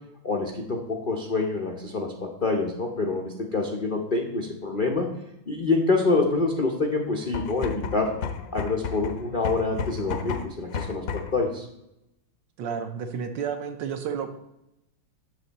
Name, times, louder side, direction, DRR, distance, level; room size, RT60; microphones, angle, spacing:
voice 1, 0.2-5.1 5.5-8.1 8.5-11.7, left 3 dB, 85° left, 0 dB, 0.4 m, -26 dB
sound 1, 7.2-11.4, left 6 dB, 65° left, 0.8 m, -32 dB
voice 2, 12.6-14.3, right 7 dB, 70° right, 7 dB, 1.2 m, -31 dB
8.0 x 6.5 x 4.0 m, 0.86 s
omnidirectional pair, 2.4 m